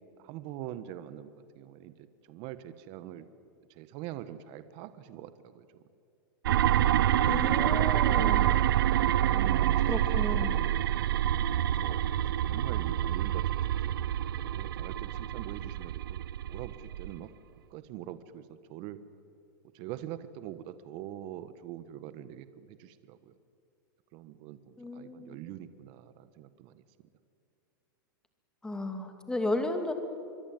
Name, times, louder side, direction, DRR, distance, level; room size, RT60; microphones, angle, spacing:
voice 1, 0.2-1.9 2.2-3.3 3.7-5.9 8.8-10.6 11.6-17.3 17.7-19.0 19.7-23.3 24.1-26.8, right 12 dB, 45° right, 12 dB, 1.4 m, -44 dB
sound 1, 6.5-17.2, right 12 dB, 80° right, 0.7 m, -27 dB
voice 2, 7.2-8.5 9.9-10.6 24.8-25.4 28.6-29.9, left 2 dB, 5° left, 6 dB, 2.7 m, -34 dB
25.5 x 23.0 x 9.1 m, 2.5 s
supercardioid pair, 140°, 11 cm